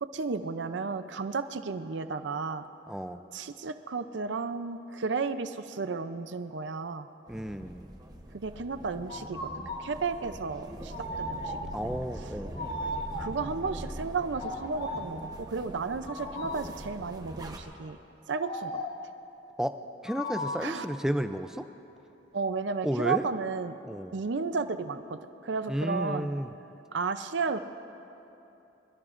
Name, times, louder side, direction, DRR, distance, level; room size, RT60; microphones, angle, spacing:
voice 1, 0.0-2.6 3.3-7.1 8.3-9.4 9.8-11.8 13.1-18.0 18.3-18.8 20.6-20.9 22.3-23.8 24.1-26.3 26.9-27.6, right 4 dB, 75° right, 10 dB, 0.5 m, -33 dB
voice 2, 2.9-3.2 7.3-7.9 11.7-12.6 19.6-19.8 20.0-21.7 22.8-23.3 23.8-24.2 25.7-26.5, equal, 5° right, 9 dB, 0.3 m, -32 dB
sound 1, 7.3-17.6, right 1 dB, 20° right, 0.9 m, -43 dB
sound 2, 9.1-9.9 10.9-11.8 12.6-13.5 14.3-15.2 16.1-16.8 18.4-19.1 20.1-20.8, left 1 dB, 55° left, 1.5 m, -37 dB
23.0 x 22.5 x 2.5 m, 2.9 s
head